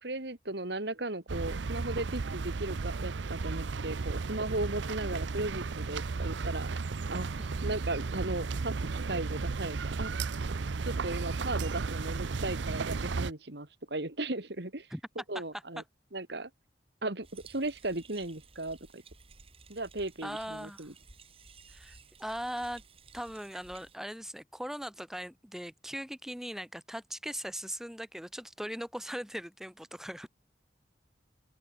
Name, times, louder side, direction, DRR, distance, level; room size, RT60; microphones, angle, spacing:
voice 1, 0.0-6.7 7.1-7.3 7.6-10.1 10.9-14.9 15.3-15.8 16.1-16.5 17.0-19.0 19.7-20.9, right 2 dB, 65° right, 2.4 m, -36 dB
sound 1, 1.3-13.3, right 4 dB, 80° right, 0.6 m, -34 dB
voice 2, 7.4-7.7 14.9-15.0 15.3-15.4 20.2-20.9 21.7-22.8 23.1-30.3, equal, ahead, 2.3 m, -40 dB
sound 2, 17.2-24.0, right 4 dB, 30° right, 3.1 m, -55 dB
open air
head